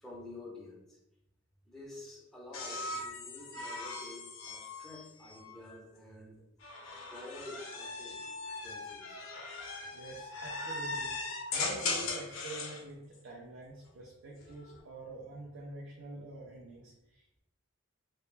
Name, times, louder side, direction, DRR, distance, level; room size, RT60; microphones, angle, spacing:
voice 1, 0.0-0.9 1.7-6.4 6.9-8.2 8.6-9.2 11.5-11.6, left 1 dB, ahead, -5 dB, 0.5 m, -49 dB
sound 1, 2.5-5.8 6.6-12.8 14.3-14.8, left 3 dB, 75° left, 0.5 m, -39 dB
voice 2, 9.9-11.2 11.5-17.4, right 2 dB, 75° right, -3 dB, 0.4 m, -46 dB
2.1 x 2.1 x 3.1 m, 0.89 s
head